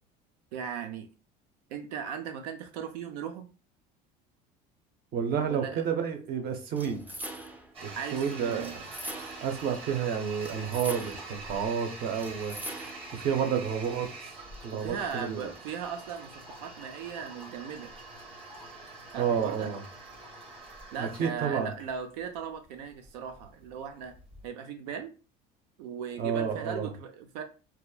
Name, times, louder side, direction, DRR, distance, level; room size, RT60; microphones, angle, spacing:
voice 1, 0.5-1.1 1.7-3.5 5.5-5.9 7.9-8.7 14.8-17.9 19.1-19.7 20.9-24.2 24.4-25.1 25.8-27.4, right 7 dB, 85° right, 7 dB, 0.4 m, -38 dB
voice 2, 5.1-7.0 7.8-8.7 9.4-12.6 13.1-14.1 14.6-15.5 19.2-19.8 21.0-21.7 26.2-26.9, right 7 dB, 50° right, 5 dB, 0.7 m, -30 dB
sound 1, 6.8-7.7 8.6-9.6 10.4-11.4 12.2-13.2, right 1 dB, 10° right, 0.4 m, -42 dB
Toilet flush, 7.7-24.5, right 3 dB, 25° right, 1.0 m, -45 dB
2.8 x 2.3 x 2.3 m, 0.35 s
supercardioid pair, 95°, 20 cm